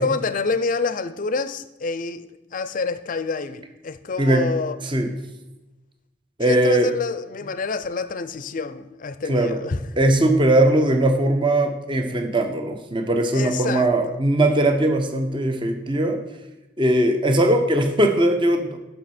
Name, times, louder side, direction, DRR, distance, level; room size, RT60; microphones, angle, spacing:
voice 1, 0.0-4.8 6.4-9.8 13.3-14.2, left 4 dB, 45° left, 13 dB, 0.5 m, -27 dB
voice 2, 6.4-6.9 9.3-9.6 10.0-16.2 16.8-18.8, right 1 dB, 25° right, 6 dB, 0.8 m, -20 dB
12.5 x 5.4 x 4.3 m, 1.0 s
head